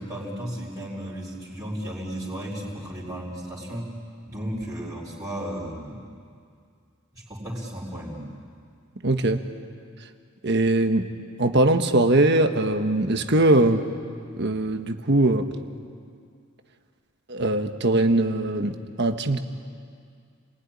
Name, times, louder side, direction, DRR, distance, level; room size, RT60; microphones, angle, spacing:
voice 1, 0.0-3.9 4.3-6.0 7.1-8.3, equal, 15° right, -6 dB, 4.4 m, -34 dB
voice 2, 9.0-9.4 10.4-11.1 11.4-13.8 14.3-15.4 17.3-19.4, right 2 dB, 55° right, 7 dB, 1.4 m, -21 dB
30.0 x 20.0 x 9.9 m, 2.3 s
head